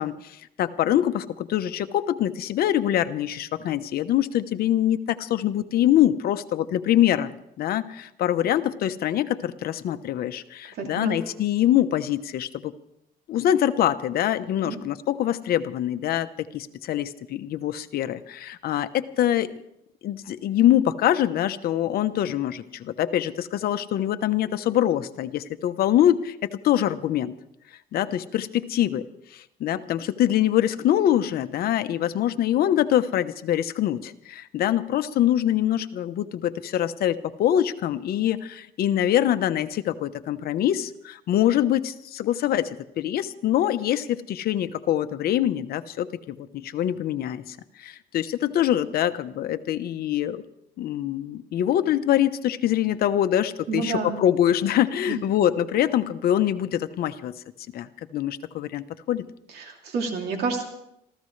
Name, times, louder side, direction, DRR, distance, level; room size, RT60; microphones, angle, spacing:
voice 1, 0.0-12.7 13.3-19.5 20.0-26.4 26.6-27.3 27.9-29.0 29.3-50.4 50.8-57.3 57.7-59.2, left 11 dB, 65° left, 10 dB, 1.0 m, -24 dB
voice 2, 10.7-11.2 14.6-14.8 53.7-54.2 55.1-55.2 59.5-60.6, right 4 dB, 70° right, 2 dB, 2.9 m, -29 dB
26.0 x 15.0 x 3.3 m, 0.79 s
cardioid pair, 110°, 17 cm